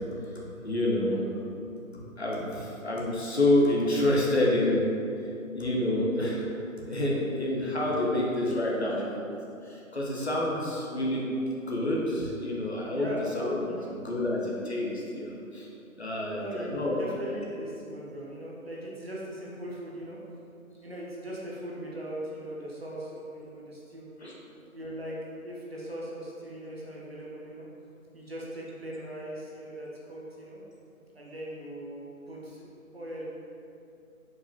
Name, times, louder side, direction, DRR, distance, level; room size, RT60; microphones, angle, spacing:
voice 1, 0.2-1.2 2.2-4.8 5.5-6.4 6.8-9.3 9.6-11.3 11.7-13.1 13.3-13.6 13.9-15.7 16.0-17.0 24.2-24.3, left 1 dB, 50° left, -4 dB, 0.6 m, -28 dB
voice 2, 12.9-13.2 13.6-13.9 16.2-20.2 20.8-24.1 24.7-25.2 25.4-27.7 28.1-30.6 31.1-32.7 32.9-33.2, right 1 dB, 45° right, -5 dB, 0.6 m, -39 dB
4.7 x 2.7 x 2.3 m, 2.6 s
figure-of-eight pair, 175°, 42 cm